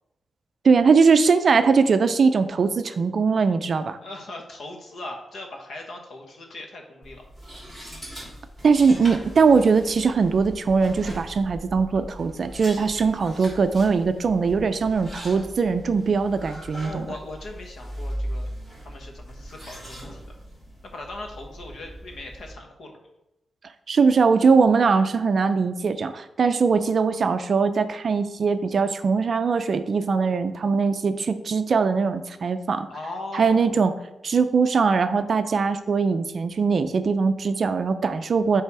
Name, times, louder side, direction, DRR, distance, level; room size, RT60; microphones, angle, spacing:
voice 1, 0.6-4.0 8.6-17.1 23.9-32.9 33.3-33.9 34.2-38.6, right 5 dB, 45° right, 10 dB, 0.4 m, -21 dB
voice 2, 4.0-7.2 16.7-18.5 18.8-20.4 20.9-23.0 32.9-33.9, left 2 dB, 65° left, 2 dB, 1.2 m, -39 dB
sound 1, 7.0-22.5, equal, 10° left, 2.3 m, -39 dB
8.4 x 3.4 x 4.7 m, 0.91 s
wide cardioid pair, 175°, 0 cm